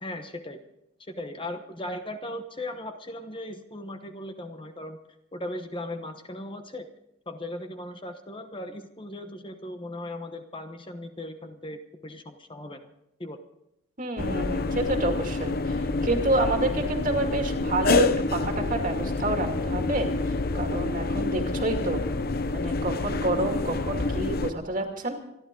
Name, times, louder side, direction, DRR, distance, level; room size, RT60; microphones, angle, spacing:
voice 1, 0.0-0.6 1.1-5.0 5.3-6.9 7.3-12.9 13.2-13.4, left 1 dB, 25° left, 7 dB, 1.1 m, -38 dB
voice 2, 14.0-20.1 20.5-22.0 22.5-25.1, right 2 dB, 40° right, 3 dB, 2.4 m, -28 dB
sound 1, 14.2-24.5, left 3 dB, 45° left, 0.8 m, -27 dB
27.0 x 11.5 x 3.8 m, 0.84 s
head